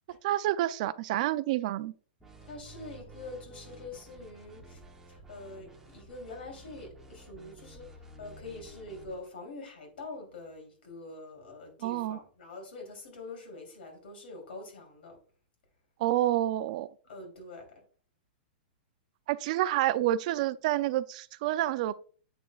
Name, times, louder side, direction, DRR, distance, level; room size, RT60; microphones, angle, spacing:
voice 1, 0.2-1.9 11.8-12.2 16.0-16.9 19.3-22.0, right 14 dB, 45° right, 0.4 m, -28 dB
sound 1, 2.2-9.3, right 2 dB, 5° right, 1.0 m, -52 dB
voice 2, 2.4-4.8 5.1-15.2 17.1-17.8, left 2 dB, 85° left, 3.2 m, -45 dB
8.1 x 6.2 x 2.4 m
supercardioid pair, 160°, 5 cm